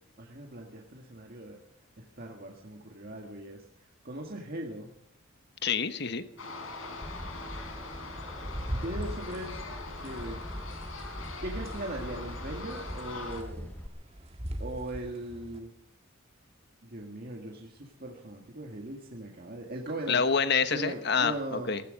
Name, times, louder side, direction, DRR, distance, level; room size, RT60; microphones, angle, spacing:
voice 1, 0.2-1.6 2.0-3.6 4.0-4.9 8.8-9.6 10.0-10.4 11.4-13.7 14.6-15.7 16.8-20.2 20.7-21.7, right 1 dB, 45° right, 0 dB, 1.8 m, -39 dB
voice 2, 5.6-6.2 20.1-21.8, left 6 dB, 50° left, 12 dB, 1.1 m, -27 dB
sound 1, 6.4-13.4, left 3 dB, 75° left, 4.2 m, -42 dB
sound 2, 7.0-13.9, equal, 10° left, 0.8 m, -42 dB
sound 3, 7.9-15.6, equal, 30° right, 1.9 m, -42 dB
17.0 x 16.0 x 5.3 m, 0.68 s
head